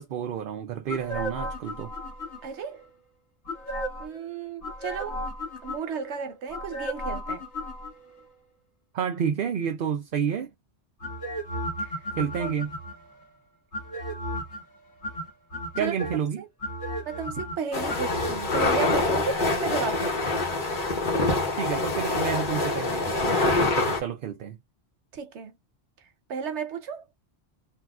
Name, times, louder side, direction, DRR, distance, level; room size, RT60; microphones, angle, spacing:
voice 1, 0.0-1.9 8.9-10.5 12.1-12.7 15.8-16.4 21.5-24.6, right 8 dB, 60° right, 0.7 m, -30 dB
sound 1, 0.9-2.7 3.4-4.2 4.6-6.1 6.5-8.2 11.0-13.1 13.7-14.6 15.0-16.2 16.6-19.0 19.2-19.3, equal, 85° left, 1.9 m, -34 dB
voice 2, 2.4-2.8 4.0-5.2 5.6-7.4 11.8-12.0 12.4-12.5 15.8-15.9 16.4-16.5 17.0-20.2 25.1-25.6 26.3-27.1, right 6 dB, 90° right, 1.1 m, -33 dB
sound 2, 17.7-24.0, left 2 dB, 50° left, 1.1 m, -25 dB
3.5 x 2.4 x 2.3 m
omnidirectional pair, 1.1 m